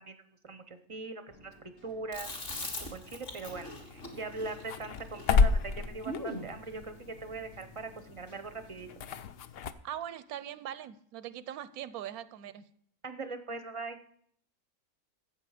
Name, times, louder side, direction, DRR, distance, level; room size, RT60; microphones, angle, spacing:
voice 1, 0.0-2.3 2.6-8.9 13.0-14.0, right 3 dB, 30° right, 9 dB, 0.6 m, -41 dB
Keyboard (musical), 1.3-9.3, left 1 dB, 90° left, 2.2 m, -57 dB
Chewing mastication, 2.1-6.5, left 1 dB, 40° left, 1.9 m, -41 dB
sound 1, 3.5-9.7, left 5 dB, 65° left, 0.6 m, -32 dB
voice 2, 9.8-12.6, right 11 dB, 85° right, 15 dB, 1.1 m, -41 dB
13.0 x 7.8 x 4.9 m, 0.65 s
omnidirectional pair, 1.5 m